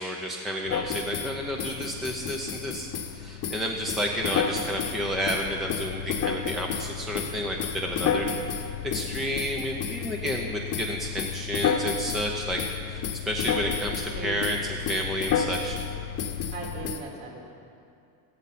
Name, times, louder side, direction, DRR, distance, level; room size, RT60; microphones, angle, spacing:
voice 1, 0.0-12.6 12.9-15.8, equal, ahead, 0 dB, 0.6 m, -31 dB
sound 1, 0.6-17.0, left 11 dB, 65° left, 0.6 m, -38 dB
sound 2, 0.7-1.3 1.6-3.1 3.4-3.6 3.9-5.0 5.3-6.9 7.1-10.4 10.7-10.9 11.2-12.3 12.6-12.8 13.0-14.1 14.4-14.6 14.9-15.9 16.2-17.0, left 6 dB, 30° left, 1.0 m, -30 dB
voice 2, 14.1-14.5 16.5-17.5, right 3 dB, 40° right, -2 dB, 3.4 m, -38 dB
16.0 x 14.0 x 4.2 m, 2.5 s
supercardioid pair, 135°, 47 cm